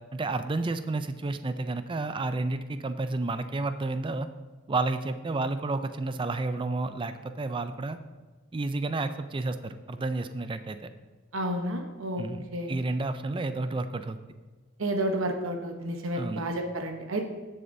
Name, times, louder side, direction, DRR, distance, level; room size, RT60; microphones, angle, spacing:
voice 1, 0.1-4.3 4.7-8.0 8.5-10.9 12.2-14.2 16.1-16.4, right 2 dB, 25° right, 10 dB, 0.4 m, -31 dB
voice 2, 11.3-12.2 12.5-12.7 14.8-17.3, right 1 dB, 65° right, 4 dB, 1.0 m, -30 dB
15.5 x 6.8 x 2.7 m, 1.3 s
head